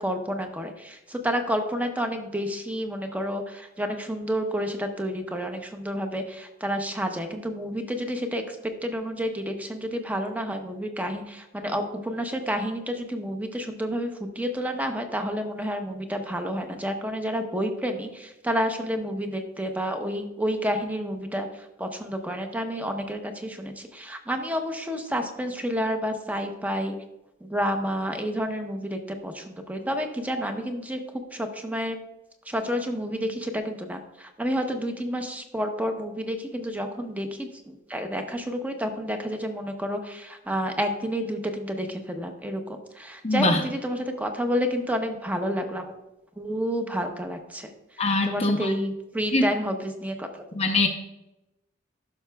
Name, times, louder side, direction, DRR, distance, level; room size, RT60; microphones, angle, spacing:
voice 1, 0.0-26.9 27.4-32.0 32.4-45.9 46.4-50.4, equal, 5° right, 5 dB, 0.7 m, -30 dB
voice 2, 43.2-43.6 48.0-48.7 49.3-49.4 50.6-50.9, left 2 dB, 30° left, 2 dB, 0.7 m, -22 dB
12.0 x 5.9 x 2.3 m, 0.93 s
head